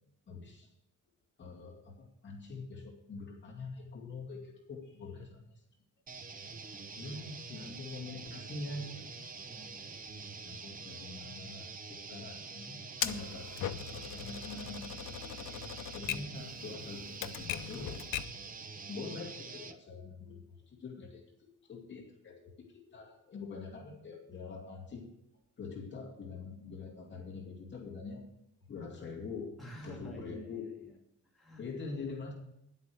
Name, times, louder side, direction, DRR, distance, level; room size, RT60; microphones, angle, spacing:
voice 1, 0.3-0.7 1.4-5.6 7.0-9.3 10.4-15.2 15.9-18.1 18.9-25.1 25.6-28.3 28.7-29.5 29.8-30.8 31.6-32.3, left 4 dB, 35° left, -1 dB, 2.5 m, -44 dB
sound 1, 6.1-19.8, right 4 dB, 25° right, 0.7 m, -46 dB
voice 2, 9.4-10.3 16.0-16.1 29.6-30.9 31.2-31.7, right 1 dB, ahead, -5 dB, 2.5 m, -50 dB
Typewriter, 13.0-18.4, left 10 dB, 90° left, 0.7 m, -40 dB
11.0 x 8.2 x 6.4 m, 0.78 s
wide cardioid pair, 175°, 31 cm